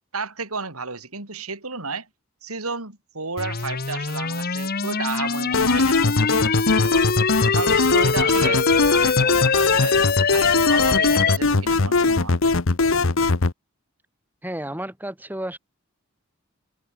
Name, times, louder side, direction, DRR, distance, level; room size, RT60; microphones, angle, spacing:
voice 1, 0.1-2.1 2.4-6.0 6.7-7.2 7.5-10.0 10.3-12.4, right 4 dB, 85° right, 5.5 m, -32 dB
sound 1, 3.4-11.4, left 5 dB, 45° left, 1.4 m, -23 dB
sound 2, 5.5-13.5, left 3 dB, 65° left, 1.0 m, -20 dB
voice 2, 8.2-8.8 14.4-15.6, right 1 dB, 10° right, 5.9 m, -33 dB
head